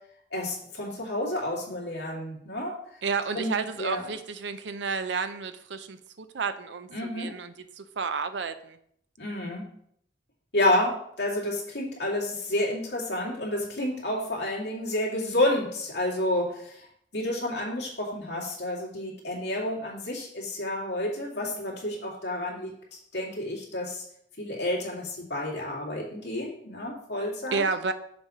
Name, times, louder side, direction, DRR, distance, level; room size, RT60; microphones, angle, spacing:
voice 1, 0.3-2.7 3.3-4.0 6.9-7.3 9.2-9.6 10.5-16.8 17.1-24.0 24.4-27.6, left 1 dB, 75° left, -3 dB, 2.3 m, -30 dB
voice 2, 3.0-8.8 27.5-27.9, right 5 dB, 80° right, 10 dB, 0.6 m, -31 dB
6.9 x 4.1 x 4.9 m, 0.69 s
head